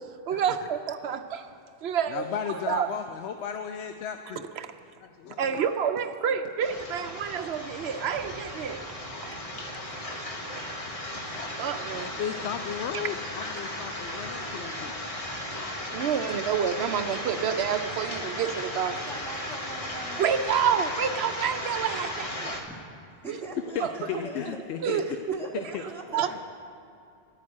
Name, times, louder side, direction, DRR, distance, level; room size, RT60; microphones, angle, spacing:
voice 1, 0.0-1.5 1.8-2.9 4.6-4.7 5.4-8.9 9.2-9.3 11.6-12.1 15.9-18.9 20.2-22.6 23.3-23.4 23.8-23.9 24.8-25.0 26.1-26.4, right 8 dB, 80° right, 8 dB, 0.9 m, -28 dB
voice 2, 2.1-4.4 5.0-5.6 11.8-14.9 23.7-25.0 26.2-26.4, left 8 dB, 90° left, 8 dB, 0.9 m, -35 dB
sound 1, 6.6-22.6, left 1 dB, 35° left, 1.2 m, -36 dB
voice 3, 18.8-20.2 22.6-22.9 23.2-24.6 24.9-26.4, right 2 dB, ahead, -2 dB, 1.2 m, -41 dB
10.5 x 10.5 x 8.4 m, 2.5 s
omnidirectional pair, 1.1 m